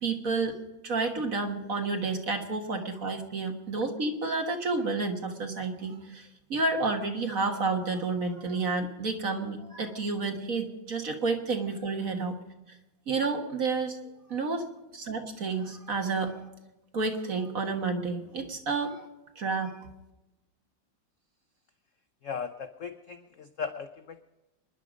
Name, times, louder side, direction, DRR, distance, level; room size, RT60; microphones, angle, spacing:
voice 1, 0.0-0.6 0.8-12.4 13.1-14.0 14.3-14.7 14.9-16.5 16.9-19.1 19.4-19.7, right 3 dB, 50° right, 4 dB, 1.8 m, -30 dB
voice 2, 22.2-24.2, left 6 dB, 60° left, 10 dB, 0.8 m, -37 dB
26.0 x 11.0 x 5.1 m, 0.99 s
omnidirectional pair, 2.0 m